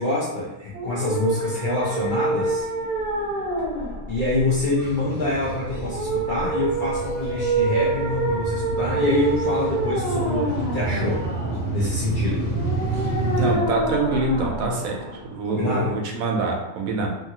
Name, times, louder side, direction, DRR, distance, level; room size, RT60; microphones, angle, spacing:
voice 1, 0.0-2.7 4.1-11.2 11.7-12.5 15.4-15.9, left 2 dB, 50° left, -7 dB, 0.6 m, -25 dB
sound 1, 0.7-15.7, right 2 dB, 40° right, 0.9 m, -27 dB
sound 2, 4.8-13.6, right 3 dB, 80° left, 1.3 m, -29 dB
voice 2, 13.3-15.0 15.3-17.1, right 3 dB, 85° right, 0 dB, 1.0 m, -25 dB
2.8 x 2.4 x 2.8 m, 0.94 s
omnidirectional pair, 1.4 m